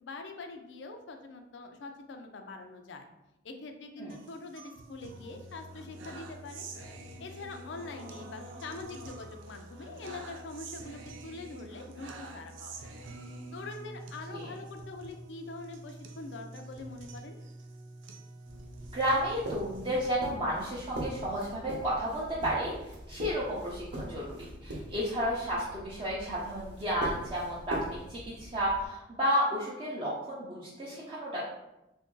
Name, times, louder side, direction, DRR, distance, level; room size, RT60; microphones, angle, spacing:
voice 1, 0.0-3.1 3.4-6.6 7.2-12.9 13.5-17.4, left 3 dB, 75° left, 5 dB, 0.4 m, -44 dB
sound 1, 4.1-20.1, right 2 dB, 85° right, 0.4 m, -46 dB
sound 2, 18.4-28.9, right 1 dB, 70° right, 0.8 m, -42 dB
voice 2, 18.9-22.7 23.1-31.4, equal, 25° right, -7 dB, 0.5 m, -32 dB
2.9 x 2.6 x 3.7 m, 0.92 s
head